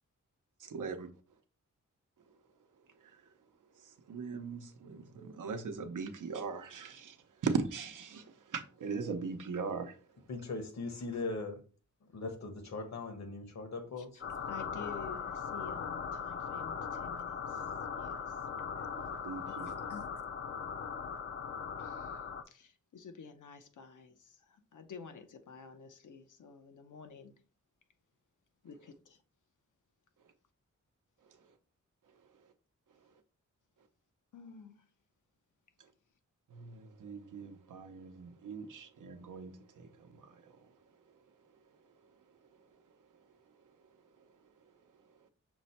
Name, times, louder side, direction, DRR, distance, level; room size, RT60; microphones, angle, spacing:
voice 1, 0.7-1.1 4.1-7.2 7.4-8.2 8.5-9.9 18.8-19.7 36.5-40.3, right 5 dB, 85° right, 0.7 m, -39 dB
voice 2, 10.3-11.6 12.1-14.2, left 3 dB, 60° left, 1.1 m, -39 dB
sound 1, 14.2-22.4, left 6 dB, 45° left, 0.4 m, -39 dB
voice 3, 14.5-17.6 17.9-18.3 19.6-20.1 21.8-22.2 22.5-27.3 28.6-29.2 34.3-34.8, left 6 dB, 80° left, 0.7 m, -51 dB
6.1 x 2.1 x 4.0 m
wide cardioid pair, 100°, 31 cm